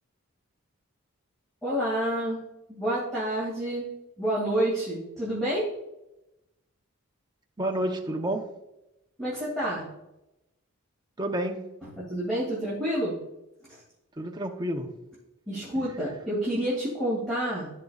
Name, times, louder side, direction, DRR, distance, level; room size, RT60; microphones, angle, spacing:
voice 1, 1.6-2.4 2.7-3.9 4.2-5.7 9.2-9.8 12.0-13.2 13.7-13.8 15.5-17.7, right 1 dB, ahead, -9 dB, 2.4 m, -28 dB
voice 2, 7.6-8.5 11.2-11.7 14.2-14.9, right 1 dB, 20° right, 3 dB, 0.8 m, -30 dB
14.5 x 5.3 x 2.4 m, 0.93 s
head